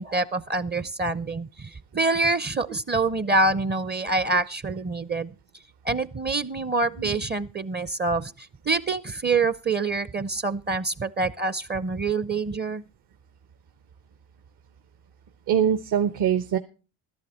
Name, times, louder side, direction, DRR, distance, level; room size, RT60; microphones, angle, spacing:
voice 1, 0.0-5.3 5.8-12.8, right 3 dB, 25° right, 17 dB, 0.6 m, -26 dB
voice 2, 15.5-16.6, right 8 dB, 60° right, 10 dB, 1.0 m, -23 dB
12.5 x 11.5 x 4.3 m, 0.33 s
supercardioid pair, 70°, 43 cm